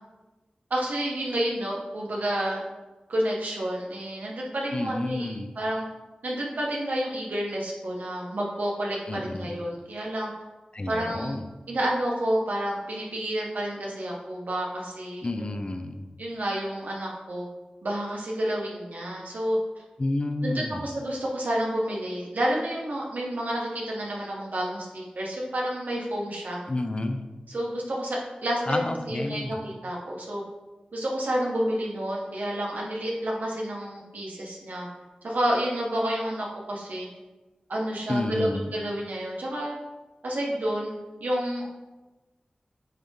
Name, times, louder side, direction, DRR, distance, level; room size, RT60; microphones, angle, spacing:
voice 1, 0.7-2.6 3.1-5.8 6.2-10.3 10.9-11.4 11.7-15.3 16.2-17.5 17.8-19.6 20.4-26.6 27.5-30.4 30.9-34.9 35.2-37.1 37.7-39.8 40.2-41.7, right 1 dB, 80° right, -3 dB, 1.3 m, -29 dB
voice 2, 4.7-5.5 9.1-9.6 10.7-11.4 15.2-16.1 20.0-20.8 26.7-27.2 28.7-29.5 38.1-38.7, left 2 dB, 40° left, 6 dB, 0.6 m, -30 dB
8.9 x 3.0 x 3.7 m, 1.2 s
wide cardioid pair, 55°, 3 cm